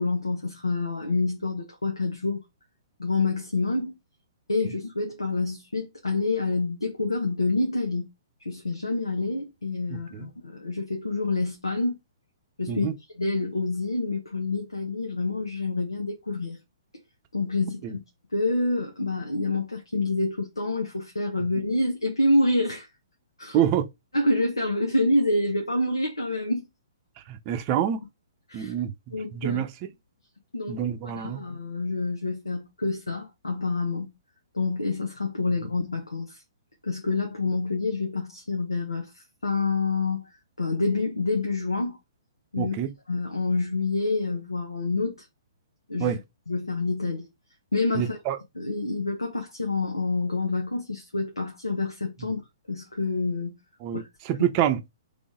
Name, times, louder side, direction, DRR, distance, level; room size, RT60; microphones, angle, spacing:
voice 1, 0.0-2.4 3.0-3.9 4.5-8.1 8.4-12.0 12.6-12.9 13.2-16.6 17.3-18.0 18.3-22.9 23.4-23.6 24.1-26.7 28.5-28.7 29.1-29.6 30.5-34.1 34.5-36.4 36.8-40.3 40.6-42.0 42.5-42.7 43.1-45.2 45.9-46.1 46.5-47.3 47.7-48.2 48.5-52.4 52.7-53.6 53.9-54.0, left 2 dB, 85° left, 1.2 m, -27 dB
voice 2, 9.9-10.3 12.7-12.9 17.8-17.9 23.5-23.9 27.3-28.0 28.5-28.9 29.3-29.7 30.7-31.4 42.6-42.9 46.0-46.2 47.9-48.4 53.8-54.8, right 10 dB, 30° right, 0.6 m, -26 dB
3.9 x 3.4 x 3.6 m
figure-of-eight pair, 120°, 2 cm